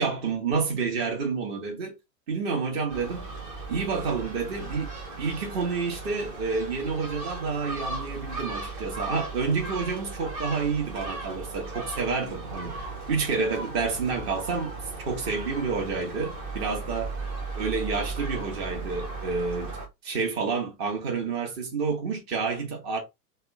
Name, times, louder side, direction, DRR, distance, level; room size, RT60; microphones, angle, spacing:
voice 1, 0.0-2.0 2.3-3.3 3.7-4.9 5.2-14.7 15.0-17.1 17.5-19.8 20.0-23.0, right 4 dB, 40° right, 1.4 m, -29 dB
Gull seagull, 2.9-19.9, right 3 dB, 15° right, 0.5 m, -37 dB
3.5 x 2.2 x 3.5 m
figure-of-eight pair, 105°, 49 cm